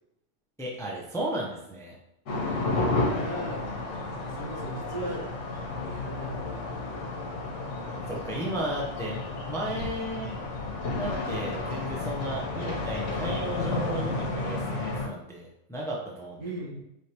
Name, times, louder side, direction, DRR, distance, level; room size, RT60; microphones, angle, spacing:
voice 1, 0.6-1.9 8.1-10.3 11.0-16.4, right 1 dB, 5° left, -3 dB, 0.5 m, -34 dB
sound 1, 2.3-15.1, left 2 dB, 80° left, 1.1 m, -32 dB
voice 2, 2.3-2.7 2.9-3.6 4.2-5.2 5.7-7.1 12.5-12.7 16.4-16.8, right 1 dB, 80° right, -5 dB, 1.7 m, -38 dB
4.8 x 3.2 x 2.9 m, 0.84 s
omnidirectional pair, 1.2 m